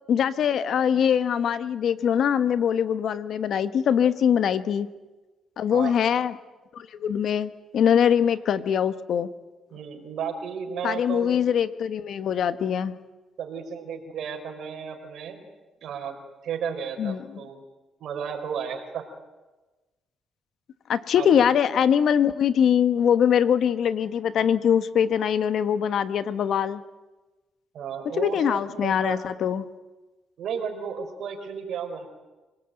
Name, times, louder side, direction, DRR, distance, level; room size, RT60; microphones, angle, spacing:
voice 1, 0.1-4.9 5.6-6.4 6.7-9.3 10.8-12.9 17.0-17.2 20.9-26.8 28.2-29.6, left 8 dB, 65° left, 13 dB, 1.3 m, -23 dB
voice 2, 5.7-6.0 9.7-11.4 13.4-15.4 15.8-17.6 18.0-19.1 21.1-21.4 27.7-29.2 30.4-32.1, right 7 dB, 70° right, 4 dB, 4.6 m, -33 dB
26.0 x 19.0 x 9.1 m, 1.2 s
cardioid pair, 90°, 0 cm